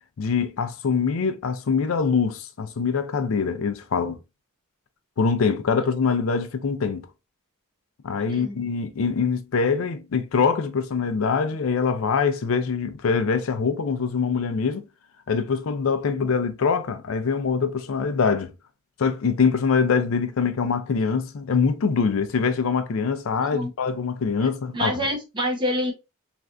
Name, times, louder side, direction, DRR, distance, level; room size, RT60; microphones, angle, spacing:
voice 1, 0.2-4.2 5.2-7.1 8.0-14.8 15.3-18.5 19.0-24.9, left 5 dB, 75° left, 0.4 m, -24 dB
voice 2, 23.4-23.7 24.7-25.9, equal, 25° right, 0.8 m, -27 dB
3.3 x 2.5 x 2.4 m
head